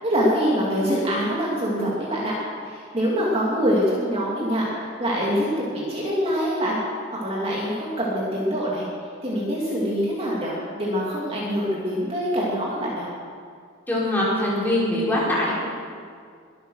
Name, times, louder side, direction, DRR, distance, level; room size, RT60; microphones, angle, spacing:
voice 1, 0.0-2.3 2.6-6.8 7.1-8.8 9.2-13.1, equal, 25° right, -5 dB, 2.7 m, -24 dB
voice 2, 13.9-15.5, left 1 dB, 10° left, -7 dB, 4.4 m, -22 dB
22.5 x 9.2 x 6.4 m, 2.2 s
head